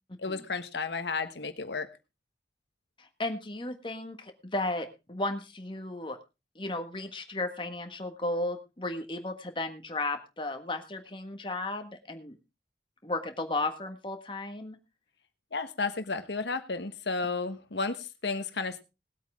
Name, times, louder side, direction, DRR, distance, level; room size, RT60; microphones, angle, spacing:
voice 1, 0.2-1.9 15.5-18.8, left 4 dB, 80° left, 10 dB, 1.2 m, -33 dB
voice 2, 3.0-6.2 6.5-12.3 13.0-14.8, left 2 dB, 30° left, 6 dB, 1.6 m, -34 dB
19.5 x 8.4 x 3.6 m, 0.28 s
head